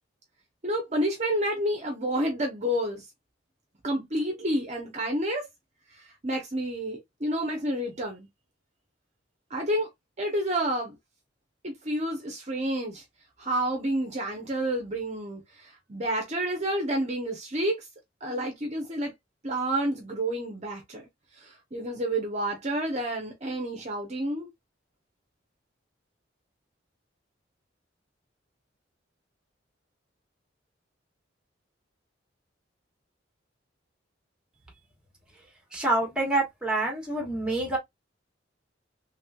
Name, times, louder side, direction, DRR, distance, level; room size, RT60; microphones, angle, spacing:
voice 1, 0.6-3.1 3.8-5.4 6.2-8.3 9.5-9.9 10.2-10.9 11.6-13.0 13.4-17.8 18.2-19.1 19.4-21.1 21.4-24.5, right 1 dB, 35° right, 0.8 m, -29 dB
voice 2, 35.7-37.8, right 2 dB, 5° right, 1.4 m, -27 dB
3.3 x 3.0 x 2.3 m
head